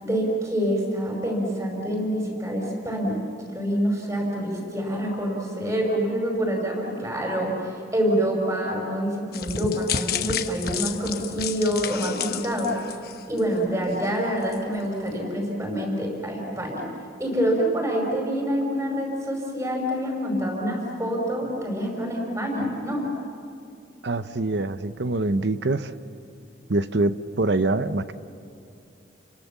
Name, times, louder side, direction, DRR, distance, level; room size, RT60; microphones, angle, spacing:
voice 1, 0.0-3.2 3.5-12.7 13.3-16.9 17.2-23.1, equal, 15° right, 0 dB, 5.6 m, -26 dB
sound 1, 9.3-13.6 13.9-14.1 14.5-14.6, left 7 dB, 55° left, 1.1 m, -31 dB
voice 2, 24.0-25.9 26.7-28.1, right 2 dB, 65° right, 12 dB, 0.8 m, -24 dB
29.5 x 24.0 x 7.3 m, 2.5 s
head